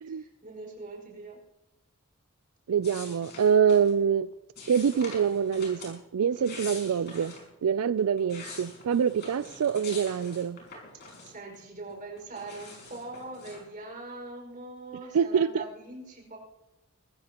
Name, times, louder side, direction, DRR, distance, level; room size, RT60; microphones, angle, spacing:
voice 1, 0.1-1.4 11.2-16.4, right 2 dB, 40° right, 0 dB, 5.5 m, -42 dB
voice 2, 2.7-4.3 4.7-7.3 7.6-10.6 15.1-15.6, right 7 dB, 90° right, 14 dB, 0.4 m, -25 dB
sound 1, 2.8-3.9 4.6-5.9 6.3-7.4 8.0-11.6 11.9-13.6, left 3 dB, 50° left, 5.5 m, -45 dB
23.0 x 14.5 x 3.0 m, 0.94 s
head